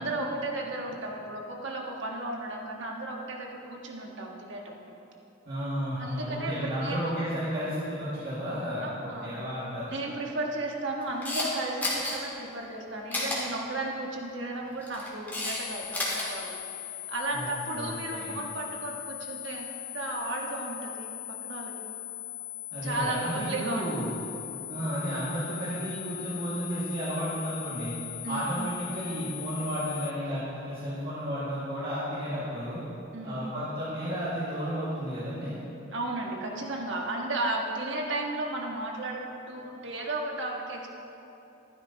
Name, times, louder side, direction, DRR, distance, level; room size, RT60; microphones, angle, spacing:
voice 1, 0.0-4.7 6.0-7.1 8.8-9.3 9.9-16.5 17.1-21.7 22.8-23.8 28.2-28.5 33.1-33.4 35.9-40.9, right 2 dB, 65° right, -1 dB, 1.5 m, -34 dB
voice 2, 5.5-9.9 17.3-17.5 17.7-18.3 22.7-24.2 24.7-27.9 28.3-32.8 33.2-35.5, equal, 50° right, -11 dB, 2.2 m, -33 dB
Camera, 11.0-11.5 11.8-12.1 13.1-13.4 14.7-15.6 15.8-16.2, left 2 dB, 10° left, 2.2 m, -31 dB
sound 1, 15.4-30.1, left 13 dB, 80° left, 0.7 m, -40 dB
14.5 x 12.0 x 2.9 m, 3.0 s
head